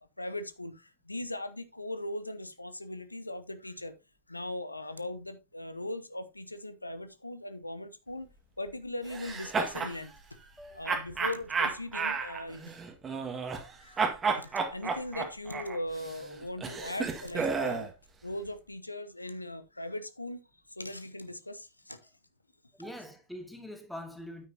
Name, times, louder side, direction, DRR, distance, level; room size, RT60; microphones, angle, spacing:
voice 1, 0.2-3.9 4.3-8.3 8.6-10.1 10.7-12.7 13.8-17.9 18.2-20.4 20.7-22.1, left 1 dB, 85° left, 0.9 m, -39 dB
sound 1, 9.1-10.0 10.9-13.7 14.0-17.9, right 5 dB, 20° right, 1.8 m, -32 dB
voice 2, 22.8-24.5, left 1 dB, ahead, 2.4 m, -43 dB
9.4 x 9.2 x 2.8 m
figure-of-eight pair, 90°, 0 cm